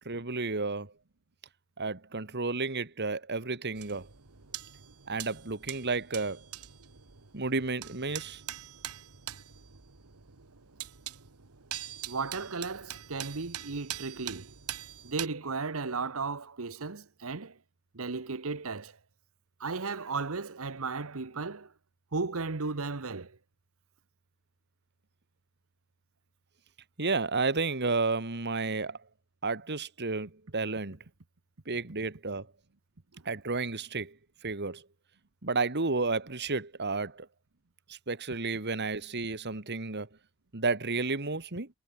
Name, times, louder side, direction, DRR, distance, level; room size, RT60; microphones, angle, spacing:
voice 1, 0.1-0.9 1.8-4.1 5.1-6.4 7.3-8.4 27.0-29.0 29.4-31.0 31.7-32.5 33.3-34.2 34.4-34.8 35.4-37.3 37.9-40.1 40.5-41.7, right 3 dB, 50° right, 2.2 m, -32 dB
sound 1, 3.8-15.3, right 12 dB, 85° right, 1.5 m, -43 dB
voice 2, 12.1-14.5 15.0-17.6 17.9-19.0 19.6-21.7 22.1-23.4, right 4 dB, 65° right, 1.1 m, -35 dB
head